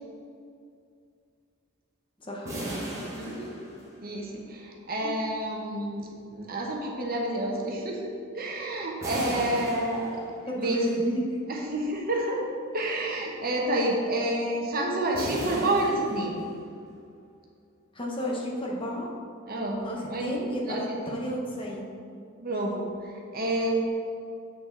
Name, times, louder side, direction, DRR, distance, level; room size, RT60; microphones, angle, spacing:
voice 1, 2.2-2.5 5.0-5.1 10.5-11.2 17.9-19.1 19.8-21.9, equal, 25° left, -2 dB, 1.1 m, -32 dB
sound 1, 2.4-4.3 9.0-10.6 15.1-16.8, right 1 dB, 15° right, 1.5 m, -37 dB
voice 2, 3.1-3.6 4.0-10.2 10.6-10.8 11.5-12.4 12.7-16.3 19.5-19.8 20.1-20.3 20.7-21.1 22.4-23.8, right 1 dB, 45° right, -1 dB, 1.1 m, -29 dB
7.5 x 6.8 x 4.0 m, 2.3 s
head